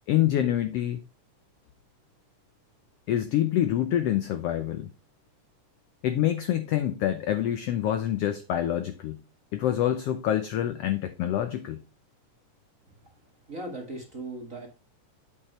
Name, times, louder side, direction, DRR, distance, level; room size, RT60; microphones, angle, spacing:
voice 1, 0.1-1.0 3.1-4.9 6.0-9.2 9.5-11.8, left 12 dB, 85° left, 1.3 m, -26 dB
voice 2, 13.5-14.7, right 2 dB, 30° right, 1.6 m, -38 dB
8.4 x 7.4 x 3.1 m
omnidirectional pair, 3.6 m